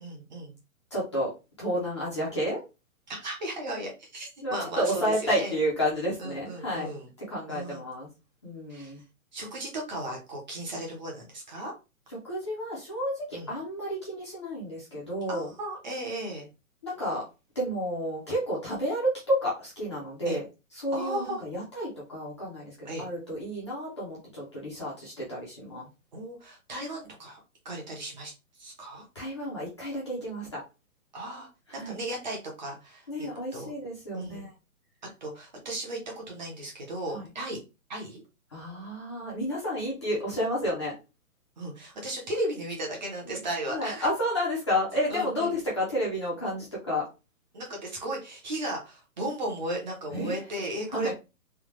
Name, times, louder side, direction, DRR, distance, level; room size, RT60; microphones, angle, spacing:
voice 1, 0.0-0.5 3.1-5.5 6.2-7.1 7.5-7.8 8.7-8.9 9.3-11.7 13.3-13.5 15.3-16.5 20.2-20.4 20.9-21.4 22.8-23.1 26.1-27.4 27.6-28.3 28.6-29.0 31.1-33.7 34.1-34.5 35.2-37.6 37.9-38.2 41.6-44.1 45.1-45.5 47.5-51.1, right 1 dB, 30° right, -1 dB, 1.0 m, -35 dB
voice 2, 0.9-1.3 1.6-2.6 4.4-6.9 7.3-8.1 8.4-9.0 12.1-15.5 16.8-17.2 17.5-20.4 20.7-25.9 29.1-30.6 31.7-32.0 33.1-34.5 37.1-37.2 38.5-40.9 43.3-43.4 43.7-47.0 50.1-50.4 50.9-51.1, equal, 20° left, -7 dB, 0.7 m, -31 dB
3.5 x 2.3 x 3.0 m, 0.28 s
hypercardioid pair, 175°, 43 cm